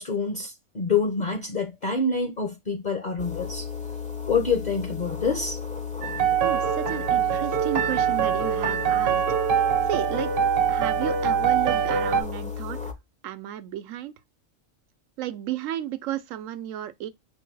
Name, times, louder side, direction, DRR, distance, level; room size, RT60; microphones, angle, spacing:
voice 1, 0.0-3.6 4.3-5.6, left 4 dB, 40° left, 0.7 m, -26 dB
sound 1, 3.2-12.9, left 6 dB, 10° left, 0.4 m, -34 dB
sound 2, 6.0-12.2, right 9 dB, 50° right, 0.9 m, -24 dB
voice 2, 6.4-9.2 9.5-10.3 10.7-12.8 13.2-14.1 15.2-17.1, right 12 dB, 80° right, 1.0 m, -33 dB
4.7 x 2.2 x 4.5 m
omnidirectional pair, 1.4 m